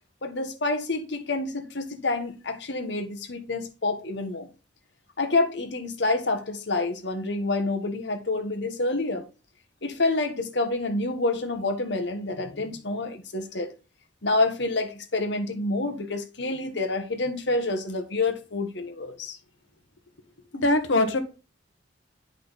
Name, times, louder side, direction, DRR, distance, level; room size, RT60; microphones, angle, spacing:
voice 1, 0.2-4.5 5.2-9.2 9.8-13.7 14.2-19.4, left 2 dB, 65° left, 1.4 m, -28 dB
voice 2, 20.5-21.2, left 2 dB, 90° left, 1.4 m, -22 dB
8.7 x 5.3 x 4.0 m
head